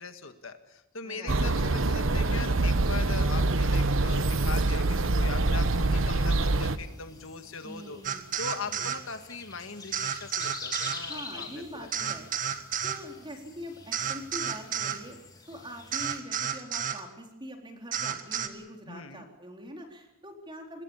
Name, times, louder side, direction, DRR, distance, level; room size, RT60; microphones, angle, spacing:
voice 1, 0.0-8.0 8.4-11.9 18.9-19.2, left 4 dB, 70° left, 8 dB, 1.9 m, -40 dB
voice 2, 1.0-1.6 7.6-8.3 8.7-8.9 11.0-12.3 12.8-15.2 15.5-20.8, equal, 25° right, 2 dB, 4.1 m, -43 dB
sound 1, 1.3-6.8, right 2 dB, 65° right, 1.1 m, -25 dB
sound 2, 5.3-16.2, left 3 dB, 20° left, 3.6 m, -46 dB
sound 3, 8.0-9.0 9.9-11.0 11.9-13.0 13.9-15.0 15.9-17.0 17.9-18.5, right 8 dB, 40° right, 1.7 m, -31 dB
26.0 x 20.5 x 7.3 m, 0.88 s
head